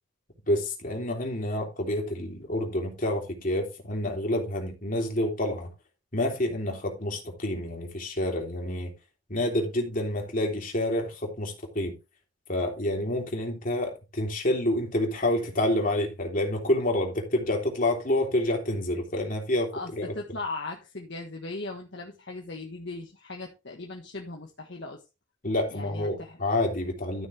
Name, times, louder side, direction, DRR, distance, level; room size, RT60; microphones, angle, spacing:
voice 1, 0.5-5.7 6.1-8.9 9.3-12.0 12.5-20.1 25.4-27.3, left 1 dB, 40° left, 3.2 m, -28 dB
voice 2, 19.7-25.0 25.7-26.4, left 3 dB, 55° left, 1.5 m, -38 dB
13.0 x 6.5 x 3.4 m
head